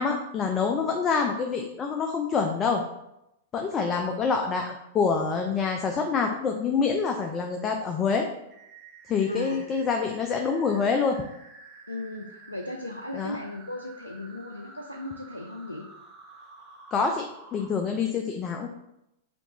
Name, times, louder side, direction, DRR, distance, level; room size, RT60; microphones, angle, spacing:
voice 1, 0.0-2.8 3.5-8.3 9.1-11.2 13.1-13.4 16.9-18.7, left 5 dB, 25° left, 3 dB, 0.4 m, -26 dB
sound 1, 8.5-17.7, right 3 dB, 30° right, 0.9 m, -50 dB
voice 2, 9.3-9.6 11.9-15.9, left 1 dB, 90° left, 3 dB, 0.4 m, -36 dB
5.1 x 2.4 x 2.9 m, 0.85 s
figure-of-eight pair, 100°, 0 cm